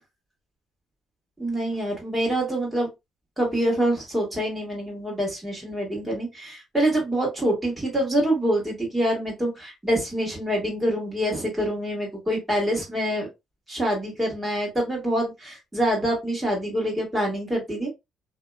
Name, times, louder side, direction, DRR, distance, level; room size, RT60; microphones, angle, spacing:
voice 1, 1.4-2.9 3.4-13.3 13.7-17.9, right 1 dB, 10° right, -2 dB, 1.9 m, -26 dB
2.9 x 2.8 x 2.3 m, 0.22 s
cardioid pair, 110°, 0 cm